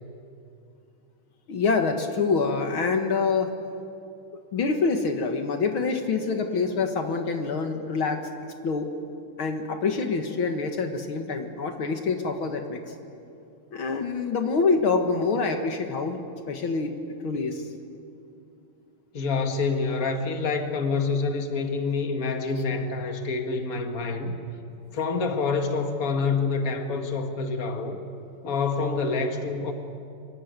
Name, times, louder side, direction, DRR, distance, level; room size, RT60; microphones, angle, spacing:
voice 1, 1.5-3.5 4.5-8.2 8.6-8.9 9.4-12.9 13.7-16.2 16.5-16.9 17.2-17.6, left 4 dB, 70° left, 5 dB, 2.4 m, -26 dB
voice 2, 19.1-24.4 24.9-28.0 28.4-29.7, left 4 dB, 40° left, 4 dB, 2.2 m, -27 dB
25.5 x 23.5 x 9.6 m, 2.6 s
omnidirectional pair, 2.4 m